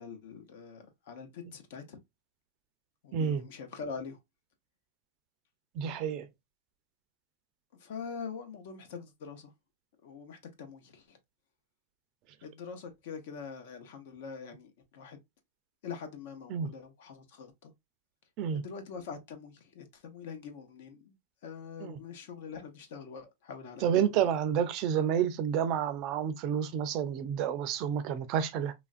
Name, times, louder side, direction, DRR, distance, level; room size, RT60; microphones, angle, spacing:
voice 1, 0.0-2.0 3.0-4.2 7.8-9.5 10.0-11.2 12.4-15.2 15.8-17.7 18.5-21.1 21.4-24.1, left 5 dB, 65° left, 0.8 m, -44 dB
voice 2, 3.1-3.4 5.7-6.3 16.5-16.7 18.4-18.6 21.8-22.0 23.8-28.7, right 8 dB, 40° right, 0.4 m, -29 dB
3.0 x 2.4 x 2.4 m
supercardioid pair, 155°, 0 cm